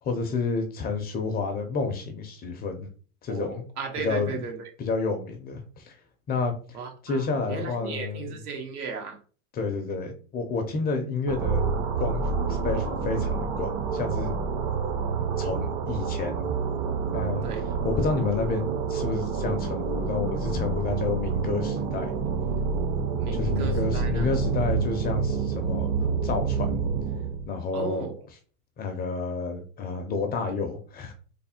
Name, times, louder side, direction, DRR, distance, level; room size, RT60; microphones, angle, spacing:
voice 1, 0.0-2.9 3.2-3.7 4.0-4.3 4.8-5.9 6.3-6.8 7.0-8.4 9.5-11.6 12.0-14.4 15.4-16.5 17.1-17.5 17.8-22.1 23.3-26.8 27.5-28.0 28.8-31.1, left 4 dB, 20° left, 6 dB, 0.4 m, -30 dB
voice 2, 3.3-4.6 6.7-9.2 17.4-17.7 23.2-24.3 27.7-28.3, right 5 dB, 90° right, 2 dB, 1.4 m, -35 dB
sound 1, 11.3-27.5, right 5 dB, 35° right, 0.6 m, -28 dB
3.3 x 2.1 x 4.1 m, 0.40 s
supercardioid pair, 125°, 44 cm